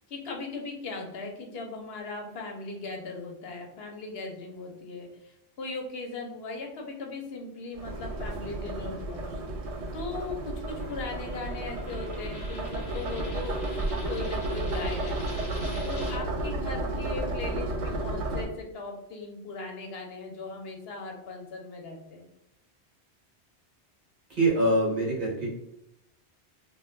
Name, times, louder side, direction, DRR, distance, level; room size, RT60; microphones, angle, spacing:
voice 1, 0.1-9.2 9.9-13.6 13.9-15.3 15.8-22.3, left 3 dB, 70° left, 2 dB, 0.8 m, -38 dB
sound 1, 7.7-18.5, right 2 dB, 85° right, 0.9 m, -32 dB
Coin (dropping), 10.7-16.2, left 1 dB, 35° left, 0.8 m, -46 dB
voice 2, 24.3-25.5, right 1 dB, 50° right, -3 dB, 1.1 m, -24 dB
2.3 x 2.2 x 3.7 m, 0.83 s
omnidirectional pair, 1.1 m